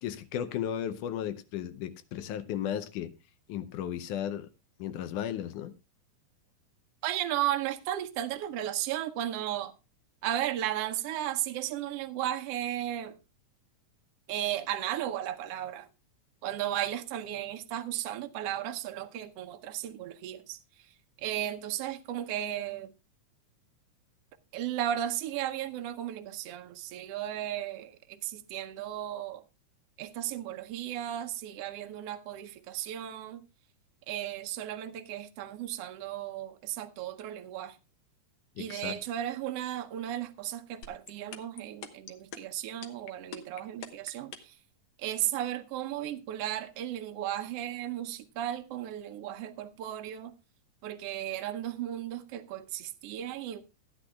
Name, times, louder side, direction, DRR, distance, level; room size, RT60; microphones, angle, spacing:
voice 1, 0.0-3.1 3.5-4.5 4.8-5.7 38.6-38.9, left 10 dB, 80° left, 2.2 m, -35 dB
voice 2, 7.0-9.7 10.2-13.2 14.3-15.9 16.4-20.6 21.2-22.9 24.5-29.4 30.0-33.4 34.1-37.8 38.6-44.5 45.0-50.3 50.8-53.6, right 12 dB, 70° right, 1.5 m, -35 dB
sound 1, 40.8-44.6, left 7 dB, 65° left, 2.0 m, -42 dB
15.5 x 10.0 x 2.3 m
omnidirectional pair, 3.6 m